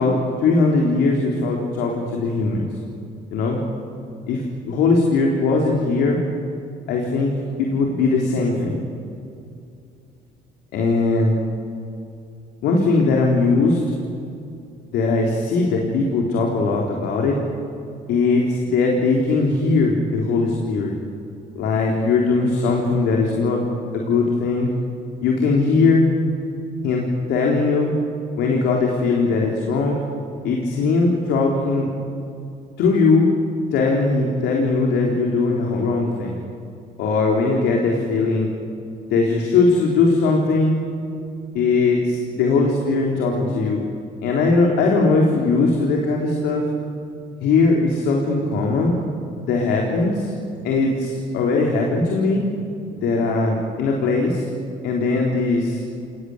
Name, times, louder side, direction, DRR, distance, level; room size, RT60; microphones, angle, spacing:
voice 1, 0.0-2.7 3.3-3.6 4.3-6.2 6.9-7.3 7.6-8.8 10.7-11.4 12.6-13.8 14.9-17.4 18.1-20.9 21.6-23.6 23.9-24.7 25.2-26.1 26.8-27.9 28.4-30.0 30.4-31.9 32.8-33.3 33.7-36.3 37.0-38.5 39.1-40.7 41.5-43.8 44.2-46.7 47.4-48.9 49.5-50.3 50.6-52.4 52.9-54.5 54.8-55.8, left 3 dB, 85° left, 0 dB, 3.8 m, -19 dB
28.5 x 19.5 x 9.7 m, 2.6 s
cardioid pair, 110°, 17 cm